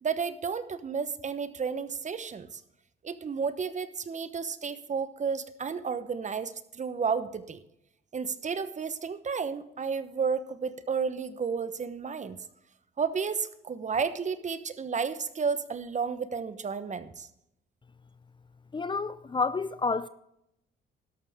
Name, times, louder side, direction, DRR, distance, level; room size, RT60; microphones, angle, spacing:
voice 1, 0.0-2.6 3.0-7.6 8.1-12.4 13.0-17.3, right 5 dB, 35° right, 1.1 m, -32 dB
voice 2, 18.7-20.1, left 4 dB, 25° left, 0.5 m, -29 dB
12.5 x 12.0 x 3.7 m
cardioid pair, 90°, 20 cm